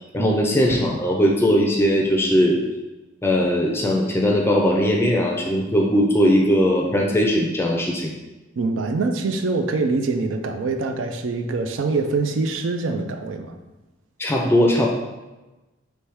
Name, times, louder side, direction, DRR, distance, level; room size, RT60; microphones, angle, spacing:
voice 1, 0.1-2.6 3.2-8.1 14.2-14.9, equal, 10° left, -1 dB, 0.4 m, -19 dB
voice 2, 8.6-13.5, right 3 dB, 85° right, 6 dB, 0.4 m, -24 dB
3.4 x 3.1 x 4.6 m, 1.1 s
head